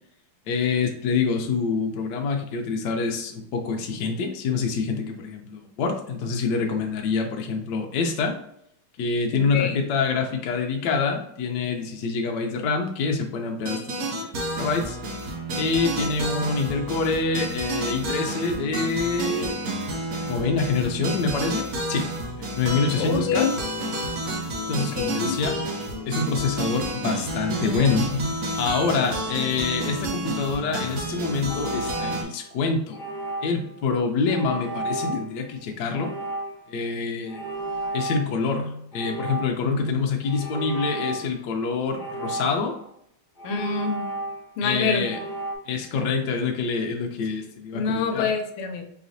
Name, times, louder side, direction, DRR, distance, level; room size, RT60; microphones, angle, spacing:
voice 1, 0.5-8.4 9.0-15.0 15.6-19.5 20.2-23.5 24.6-25.6 26.0-33.0 33.4-36.1 36.7-37.5 37.9-42.7 44.6-45.2 45.7-48.3, left 4 dB, 65° left, 3 dB, 1.1 m, -26 dB
voice 2, 9.3-9.8 23.0-23.5 24.8-25.3 35.0-35.2 43.4-44.1 44.6-45.0 47.7-48.8, left 5 dB, 85° left, 5 dB, 1.6 m, -26 dB
sound 1, 13.7-32.2, right 1 dB, 60° right, 0.9 m, -30 dB
sound 2, 31.5-32.5 32.9-33.7 34.3-35.3 35.9-36.8 37.3-38.6 38.9-39.7 40.3-41.4 41.9-42.8 43.4-44.6 45.0-45.6, right 2 dB, 50° left, 0.6 m, -33 dB
4.7 x 3.0 x 2.6 m, 0.71 s
omnidirectional pair, 2.4 m